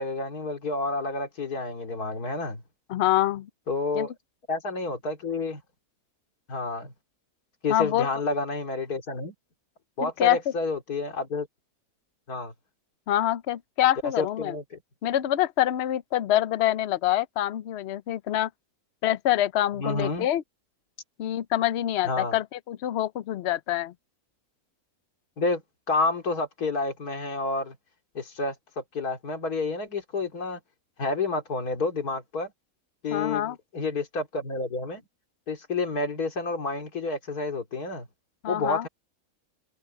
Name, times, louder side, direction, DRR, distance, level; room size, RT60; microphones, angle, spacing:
voice 1, 0.0-2.6 3.7-4.1 4.5-5.6 6.5-6.9 7.6-9.3 10.0-11.5 12.3-12.5 14.2-14.8 19.7-20.3 22.0-22.4 25.4-25.6 25.9-27.8 28.1-30.6 31.0-32.5 33.0-35.0 35.5-38.1 38.5-38.9, left 3 dB, 80° left, 3.2 m, -29 dB
voice 2, 2.9-3.5 3.9-4.1 7.7-8.1 10.0-10.4 13.1-14.6 15.0-18.5 19.0-20.4 21.2-23.9 33.1-33.6 38.4-38.9, left 13 dB, 55° left, 0.8 m, -25 dB
omnidirectional pair, 1.6 m